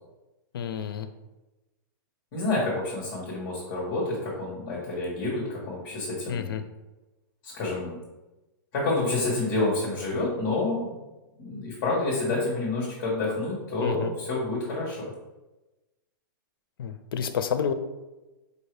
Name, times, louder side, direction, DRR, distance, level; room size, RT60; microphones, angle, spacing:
voice 1, 0.5-1.1 6.3-6.6 12.3-12.4 13.8-14.1 16.8-17.7, left 7 dB, 90° left, 9 dB, 0.5 m, -29 dB
voice 2, 2.3-6.5 7.4-8.0 8.7-11.0 11.4-15.1, left 2 dB, 40° left, -6 dB, 1.3 m, -28 dB
4.9 x 2.7 x 3.3 m, 1.1 s
hypercardioid pair, 165°, 12 cm